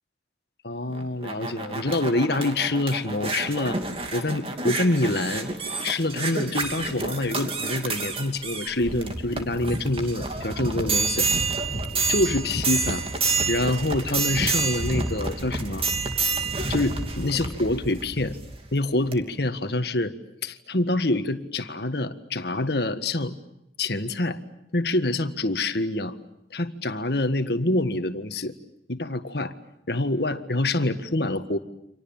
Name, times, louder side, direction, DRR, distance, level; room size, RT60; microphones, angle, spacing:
voice 1, 0.6-3.8 4.1-5.5 5.8-11.3 12.1-13.1 13.5-15.9 16.7-18.4 18.7-20.1 20.4-23.4 23.8-24.4 24.7-26.2 26.5-28.5 28.9-29.5 29.9-31.6, left 2 dB, 60° left, 10 dB, 1.7 m, -26 dB
sound 1, 0.9-18.6 19.1-19.2, right 3 dB, 30° right, 2.9 m, -29 dB
30.0 x 26.5 x 7.3 m, 0.81 s
head